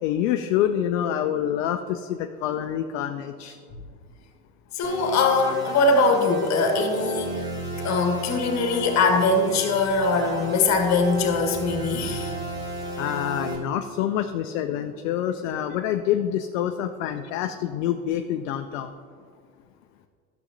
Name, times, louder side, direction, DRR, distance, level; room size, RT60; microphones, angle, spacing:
voice 1, 0.0-3.6 13.0-18.9, left 10 dB, 55° left, 7 dB, 0.5 m, -27 dB
voice 2, 4.7-7.5 7.8-12.3, left 3 dB, 35° left, 4 dB, 1.5 m, -22 dB
sound 1, 4.8-13.6, right 2 dB, 25° right, 2.2 m, -33 dB
12.0 x 7.0 x 2.7 m, 2.1 s
figure-of-eight pair, 80°, 45 cm